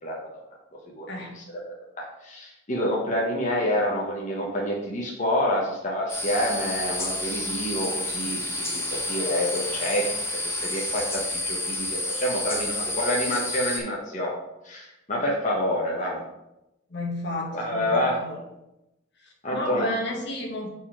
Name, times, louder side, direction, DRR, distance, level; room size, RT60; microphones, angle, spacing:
voice 1, 0.0-0.4 0.9-1.0 1.3-14.4 14.6-16.2 17.5-18.2 19.4-19.9, equal, 40° left, -3 dB, 1.2 m, -28 dB
sound 1, 6.1-13.8, left 1 dB, 15° left, 1.2 m, -30 dB
voice 2, 16.9-18.4 19.2-20.7, left 1 dB, 60° left, 0 dB, 1.6 m, -32 dB
5.4 x 4.7 x 6.0 m, 0.90 s
head